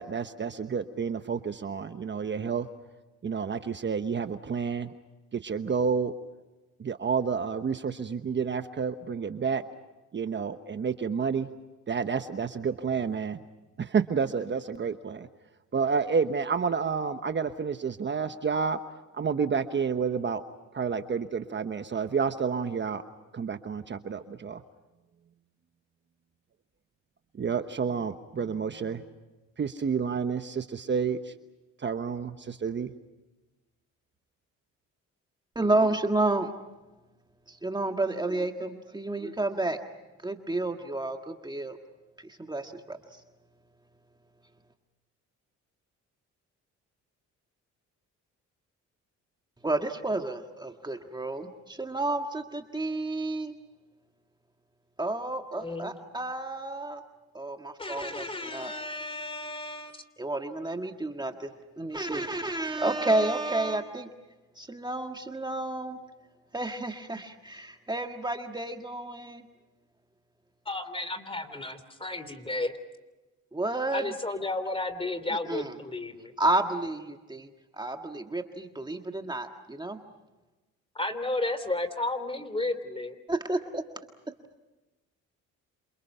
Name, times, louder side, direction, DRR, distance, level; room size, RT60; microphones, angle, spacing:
voice 1, 0.0-2.7 3.2-4.9 5.3-6.1 6.8-9.6 10.1-11.5 11.9-13.4 13.8-15.3 15.7-18.8 19.1-20.4 20.7-23.0 23.3-24.6 27.3-29.0 29.6-31.3 31.8-32.9, right 6 dB, 40° right, 9 dB, 1.1 m, -29 dB
voice 2, 35.6-36.5 37.5-39.8 40.2-41.8 42.2-43.2 49.6-53.6 55.0-57.0 57.3-58.7 60.2-61.5 61.8-64.1 64.6-66.0 66.5-69.5 73.5-74.1 75.5-75.7 76.4-80.0 83.3-83.8, right 2 dB, 15° right, 4 dB, 1.7 m, -31 dB
voice 3, 55.6-56.0 57.8-60.0 70.6-72.8 73.9-76.3 80.9-83.2, left 2 dB, 20° left, 12 dB, 3.1 m, -33 dB
28.0 x 28.0 x 5.6 m, 1.1 s
cardioid pair, 90°, 30 cm